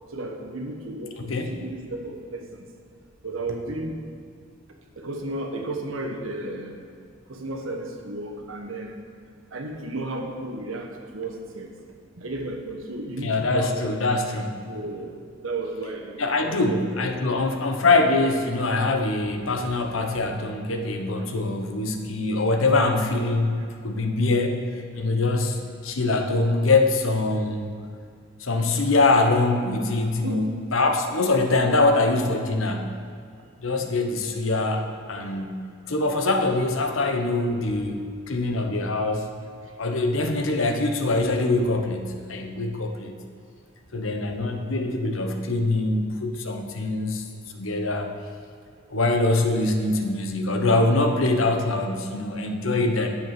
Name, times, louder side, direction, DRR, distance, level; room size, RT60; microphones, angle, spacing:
voice 1, 0.1-2.7 3.2-4.0 5.0-6.7 7.3-8.9 9.5-11.7 12.2-13.8 14.6-15.2 15.4-17.5 23.6-23.7 23.9-24.3 25.2-25.4 30.2-30.5 33.6-33.9 35.2-35.5, right 2 dB, 75° right, 2 dB, 1.3 m, -34 dB
voice 2, 1.2-1.5 13.2-14.6 16.2-24.6 24.9-27.7 28.4-33.0 33.6-38.0 38.3-39.3 39.8-43.2 43.9-47.2 47.5-48.1 48.9-53.1, left 2 dB, 70° left, 5 dB, 1.0 m, -23 dB
9.4 x 7.5 x 5.9 m, 2.2 s
head